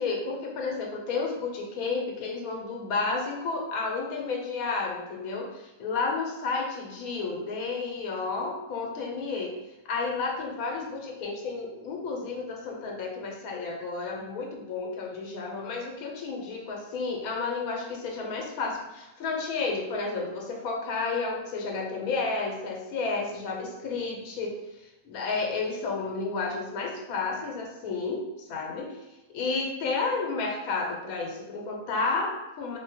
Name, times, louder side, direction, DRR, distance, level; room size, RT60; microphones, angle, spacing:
voice 1, 0.0-9.5 9.8-29.0 29.3-32.8, left 4 dB, 85° left, 0 dB, 1.1 m, -31 dB
3.1 x 2.1 x 2.8 m, 0.99 s
omnidirectional pair, 1.5 m